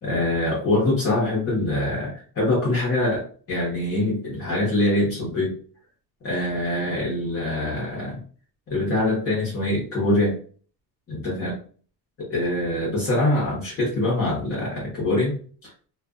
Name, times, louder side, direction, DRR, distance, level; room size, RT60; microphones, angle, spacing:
voice 1, 0.0-5.6 6.2-8.2 8.7-10.4 11.1-11.5 12.2-15.7, left 1 dB, 35° left, -6 dB, 1.0 m, -24 dB
2.5 x 2.4 x 2.4 m, 0.43 s
cardioid pair, 165°, 40 cm